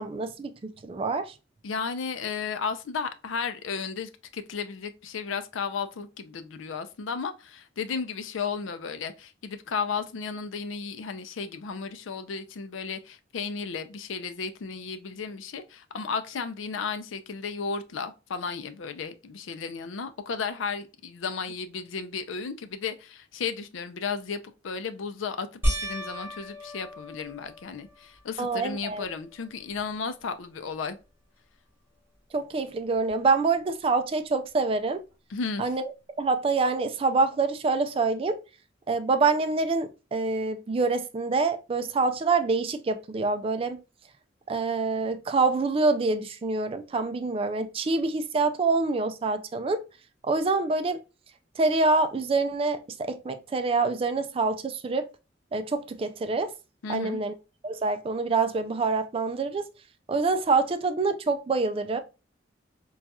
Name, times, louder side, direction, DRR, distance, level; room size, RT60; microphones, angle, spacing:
voice 1, 0.0-1.3 28.4-29.1 32.3-35.0 35.6-35.9 36.2-38.4 38.9-43.8 44.5-49.8 50.2-51.0 51.6-55.1 55.5-56.5 56.9-57.3 57.6-59.6 60.1-62.0, right 3 dB, 30° right, 0.3 m, -26 dB
voice 2, 1.6-31.0 35.3-35.6 56.8-57.2, left 5 dB, 85° left, 0.4 m, -34 dB
sound 1, 25.6-28.2 28.8-29.4 29.8-29.9 33.1-33.2, equal, 10° right, 1.6 m, -33 dB
4.0 x 2.3 x 2.3 m
head